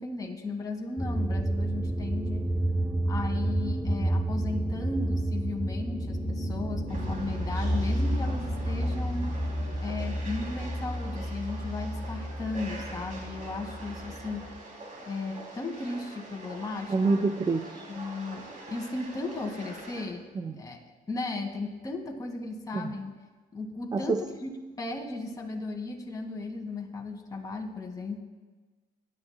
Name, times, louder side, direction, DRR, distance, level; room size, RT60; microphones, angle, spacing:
voice 1, 0.0-2.5 3.1-9.3 9.8-14.5 15.0-16.9 17.8-20.2 20.5-20.8 21.1-23.1 23.5-24.5 24.8-28.2, left 3 dB, 20° left, 1 dB, 2.2 m, -35 dB
sound 1, 1.0-14.6, right 1 dB, 5° right, 1.0 m, -30 dB
sound 2, 6.9-20.0, right 2 dB, 50° right, 3.2 m, -45 dB
voice 2, 16.9-17.9 20.4-20.5 22.7-22.9 23.9-24.2, right 3 dB, 25° right, 6 dB, 0.5 m, -27 dB
22.5 x 11.5 x 2.3 m, 1.3 s
cardioid pair, 110°, 17 cm